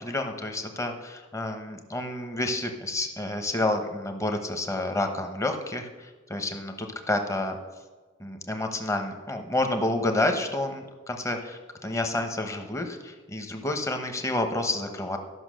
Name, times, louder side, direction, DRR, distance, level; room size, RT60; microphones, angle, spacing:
voice 1, 0.0-7.6 8.2-15.2, left 2 dB, 15° left, 5 dB, 1.0 m, -29 dB
12.5 x 5.9 x 6.4 m, 1.3 s
head